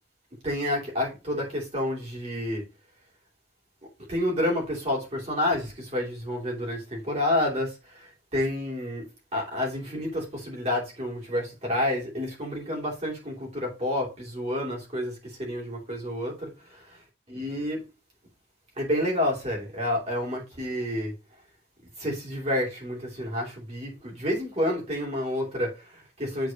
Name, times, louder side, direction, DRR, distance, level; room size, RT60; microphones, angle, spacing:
voice 1, 0.4-2.6 4.1-17.8 18.8-21.1 22.0-26.5, left 1 dB, 35° right, 2.8 m, -29 dB
8.1 x 4.2 x 2.9 m
head